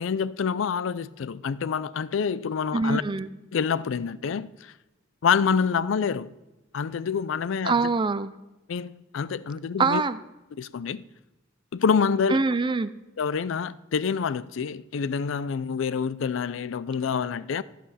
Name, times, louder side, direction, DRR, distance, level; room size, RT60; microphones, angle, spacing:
voice 1, 0.0-3.0 3.5-4.7 5.2-6.3 6.7-7.7 8.7-10.0 10.6-11.0 11.7-12.4 13.2-17.6, left 6 dB, 70° left, 0.4 m, -27 dB
voice 2, 2.7-3.3 7.7-8.3 9.8-10.2 12.3-12.9, right 4 dB, 25° right, 0.4 m, -24 dB
14.0 x 7.8 x 4.2 m
head